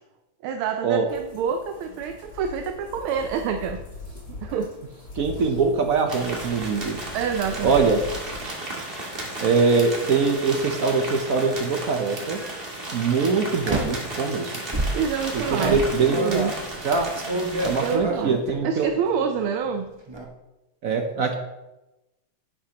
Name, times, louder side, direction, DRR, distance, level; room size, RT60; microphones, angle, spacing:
voice 1, 0.4-3.8 4.0-4.7 7.1-7.9 14.9-16.5 17.7-19.9, right 6 dB, 80° right, 6 dB, 1.5 m, -27 dB
sound 1, 1.1-8.4, left 3 dB, 60° left, 3.6 m, -41 dB
voice 2, 5.1-7.0 7.6-8.0 9.4-12.4 12.9-14.5 15.3-16.2 16.8-17.1 17.6-18.9 20.8-21.3, right 4 dB, 60° right, 4 dB, 0.9 m, -22 dB
sound 2, 6.1-18.0, right 2 dB, 30° right, 1.7 m, -34 dB
sound 3, 7.3-7.9 9.6-9.9 10.6-11.5 12.2-12.5 13.6-14.1 14.7-18.5 18.8-19.4 19.6-20.2, right 2 dB, 45° right, 0.3 m, -30 dB
10.0 x 10.0 x 2.9 m, 1.0 s
omnidirectional pair, 2.4 m